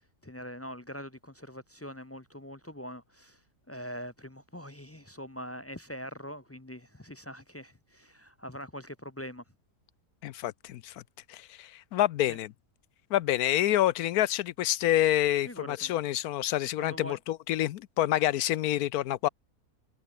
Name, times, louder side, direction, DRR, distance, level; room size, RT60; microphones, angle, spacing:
voice 1, 0.0-9.4 12.3-12.4 15.5-15.9 16.8-17.2, equal, 15° left, 0.5 m, -43 dB
voice 2, 10.2-11.0 11.3-12.5 13.1-19.3, left 13 dB, 75° left, 1.1 m, -27 dB
omnidirectional pair, 1.7 m